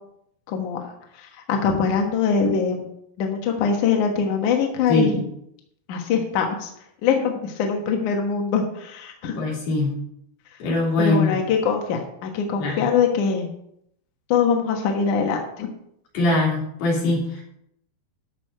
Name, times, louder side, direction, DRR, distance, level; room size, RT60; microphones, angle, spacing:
voice 1, 0.5-0.8 1.2-2.9 3.2-5.1 5.9-6.7 7.0-9.4 11.0-13.5 14.3-15.7, left 6 dB, 60° left, 2 dB, 2.4 m, -23 dB
voice 2, 4.9-5.2 9.4-9.9 10.6-11.4 12.6-12.8 16.1-17.4, left 2 dB, 85° left, -3 dB, 5.7 m, -22 dB
13.5 x 5.3 x 7.5 m, 0.74 s
omnidirectional pair, 4.6 m